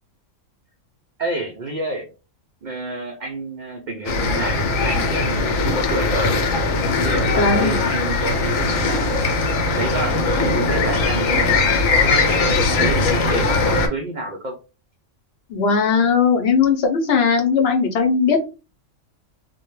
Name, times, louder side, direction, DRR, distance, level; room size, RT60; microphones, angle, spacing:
voice 1, 1.2-2.1 2.6-6.4 7.0-9.2 9.8-14.6, right 2 dB, 80° right, 2 dB, 0.4 m, -29 dB
sound 1, 4.1-13.9, left 3 dB, 90° left, 1.0 m, -20 dB
voice 2, 7.4-7.8 15.5-18.5, left 5 dB, 60° left, 3 dB, 0.7 m, -18 dB
2.2 x 2.1 x 3.0 m, 0.30 s
omnidirectional pair, 1.3 m